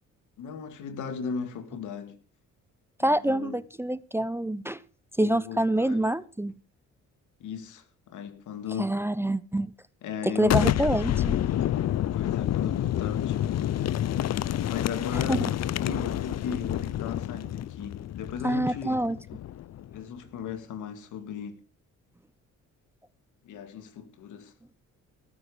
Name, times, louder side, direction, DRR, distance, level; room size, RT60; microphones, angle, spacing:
voice 1, 0.4-2.2 3.0-3.6 5.2-6.0 7.4-8.9 10.0-10.7 12.1-14.3 14.7-15.5 15.8-19.0 19.9-21.6 23.4-24.5, left 7 dB, 80° left, 2.2 m, -37 dB
voice 2, 3.0-4.8 5.2-6.6 8.8-9.7 10.2-11.4 15.1-15.5 18.4-19.2, right 1 dB, 10° right, 0.6 m, -26 dB
Boom, 10.4-20.0, left 12 dB, 60° left, 0.7 m, -28 dB
18.0 x 9.5 x 5.0 m
cardioid pair, 90°, 30 cm